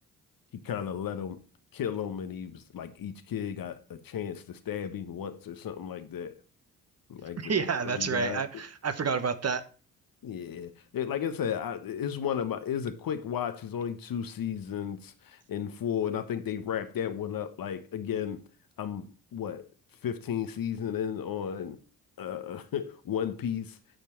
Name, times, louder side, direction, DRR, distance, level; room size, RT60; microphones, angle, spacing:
voice 1, 0.6-1.4 1.7-6.4 7.1-8.4 10.2-18.4 18.8-19.7 20.0-21.8 22.2-23.8, left 8 dB, 55° left, 1.2 m, -34 dB
voice 2, 7.4-9.6, right 5 dB, 35° right, 1.2 m, -29 dB
9.0 x 6.8 x 4.5 m
hypercardioid pair, 45°, 42 cm